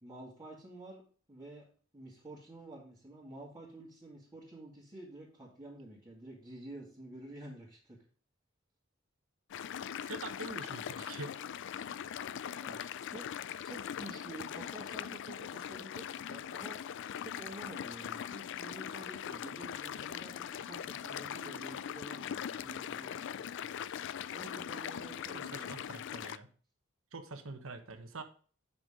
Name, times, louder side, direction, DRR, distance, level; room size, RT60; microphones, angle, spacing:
voice 1, 0.0-1.0 1.3-1.6 1.9-8.0 12.6-13.3 13.6-16.8 17.2-23.8 24.3-25.8, right 1 dB, 20° right, 2.2 m, -50 dB
sound 1, 9.5-26.4, left 9 dB, 60° left, 0.4 m, -41 dB
voice 2, 10.0-11.3 25.3-26.5 27.1-28.2, right 3 dB, 75° right, 1.2 m, -45 dB
8.0 x 6.1 x 3.7 m
head